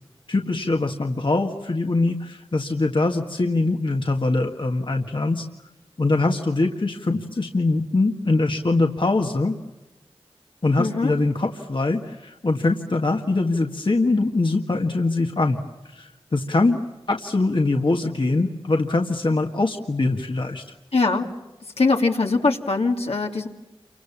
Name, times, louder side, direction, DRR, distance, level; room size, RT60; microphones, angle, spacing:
voice 1, 0.3-5.4 6.0-9.5 10.6-16.8 17.1-20.6, left 2 dB, 55° left, 3 dB, 1.7 m, -23 dB
voice 2, 10.8-11.1 20.9-21.3 21.8-23.5, left 3 dB, 75° left, 1 dB, 2.6 m, -21 dB
29.0 x 25.5 x 7.3 m, 1.0 s
wide cardioid pair, 50°, 10 cm